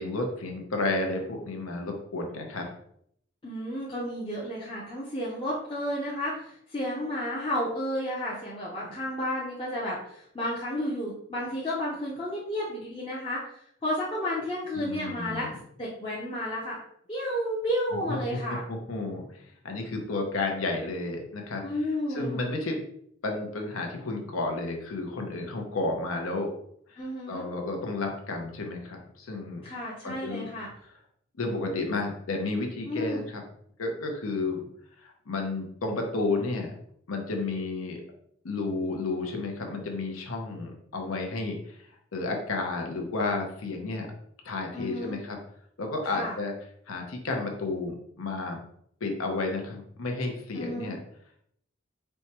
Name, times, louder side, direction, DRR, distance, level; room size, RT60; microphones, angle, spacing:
voice 1, 0.0-2.6 14.7-15.5 17.9-21.6 22.1-22.8 23.2-26.5 26.9-29.7 30.0-30.5 31.4-33.4 33.8-34.7 35.0-36.7 37.1-38.0 38.4-41.9 42.1-44.1 44.4-45.4 45.8-46.5 46.9-48.6 49.0-51.0, left 3 dB, 85° left, 2 dB, 0.7 m, -32 dB
voice 2, 3.4-13.4 13.8-15.5 15.8-16.8 17.1-18.6 21.6-22.5 27.0-27.5 29.6-30.7 32.9-33.2 44.7-45.2 46.1-46.3 50.5-51.0, equal, 25° left, -6 dB, 0.5 m, -32 dB
4.4 x 2.2 x 2.9 m, 0.69 s
head